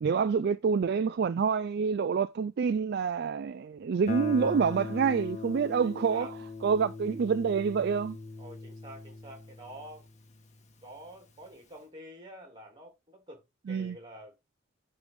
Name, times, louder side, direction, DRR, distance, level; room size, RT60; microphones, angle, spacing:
voice 1, 0.0-6.3 6.6-8.2 13.7-14.0, right 6 dB, 55° right, 0.4 m, -27 dB
Guitar, 4.1-10.8, left 3 dB, 35° left, 1.3 m, -40 dB
voice 2, 5.8-6.3 8.4-10.1 10.8-13.4 13.7-14.4, equal, 25° right, 2.7 m, -48 dB
9.3 x 3.3 x 5.1 m
head